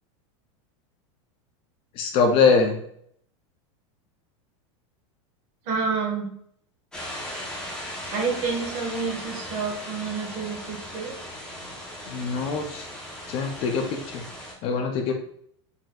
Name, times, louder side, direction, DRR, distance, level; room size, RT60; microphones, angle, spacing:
voice 1, 2.0-2.8 12.1-12.8 13.3-14.2 14.6-15.1, left 5 dB, 35° left, 4 dB, 0.4 m, -23 dB
voice 2, 5.7-6.3 8.1-11.1, right 5 dB, 45° right, 0 dB, 1.2 m, -29 dB
sound 1, 6.9-14.5, equal, 5° left, 0.7 m, -37 dB
4.0 x 2.6 x 2.2 m, 0.67 s
supercardioid pair, 150°, 16 cm